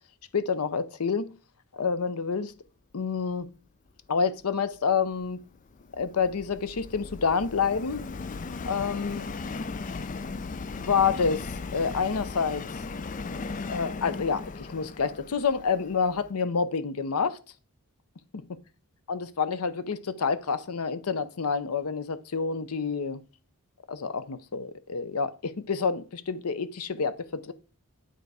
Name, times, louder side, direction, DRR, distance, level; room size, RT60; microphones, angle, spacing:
voice 1, 0.3-1.3 1.7-2.5 2.9-3.5 4.1-5.4 6.0-8.0 8.7-9.3 10.8-12.6 13.7-17.4 19.1-23.2 23.9-27.5, left 5 dB, 85° left, 0.7 m, -28 dB
Subway metro underground, 5.0-16.3, left 4 dB, 35° left, 0.4 m, -37 dB
9.3 x 3.9 x 4.7 m
head